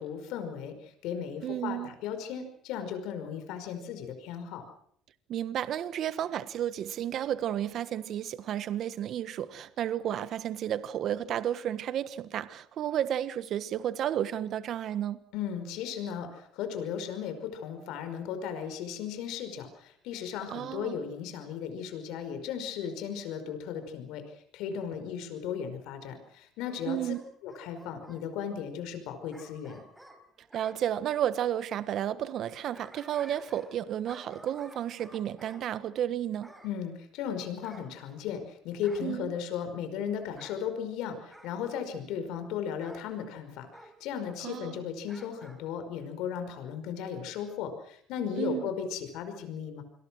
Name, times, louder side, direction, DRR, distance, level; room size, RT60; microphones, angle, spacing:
voice 1, 0.0-4.6 15.3-27.1 27.4-29.8 36.6-43.7 44.0-49.8, left 8 dB, 80° left, 5.3 m, -36 dB
voice 2, 1.4-1.9 5.3-15.2 20.5-21.0 26.8-27.2 30.5-36.5 39.0-39.3 44.4-44.8 48.4-48.7, right 10 dB, 60° right, 1.4 m, -32 dB
Bark / Growling, 26.6-28.2 29.3-30.8 32.4-33.8 34.1-35.6 36.4-36.7 37.6-38.4 38.8-39.2 40.3-40.6 41.3-41.6 42.8-43.1 43.7-43.9 45.0-45.6 46.0-46.1, right 1 dB, 5° right, 5.1 m, -52 dB
28.0 x 22.0 x 6.3 m
cardioid pair, 110°, 0 cm